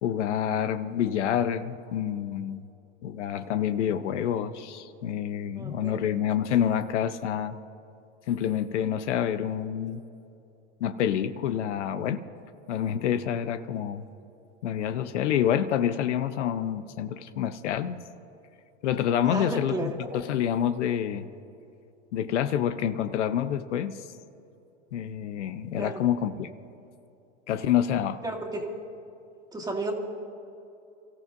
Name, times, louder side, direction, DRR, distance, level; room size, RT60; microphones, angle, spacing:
voice 1, 0.0-2.7 3.0-7.6 8.3-10.0 10.8-12.2 12.7-14.0 14.6-18.0 18.8-21.3 22.1-23.9 24.9-26.5 27.5-28.2, left 9 dB, 80° left, 11 dB, 0.9 m, -27 dB
voice 2, 5.6-6.0 19.2-20.2 25.8-26.1 28.2-28.7 29.5-29.9, right 1 dB, 10° right, 1 dB, 2.2 m, -33 dB
29.5 x 14.5 x 2.7 m, 2.7 s
hypercardioid pair, 115°, 35 cm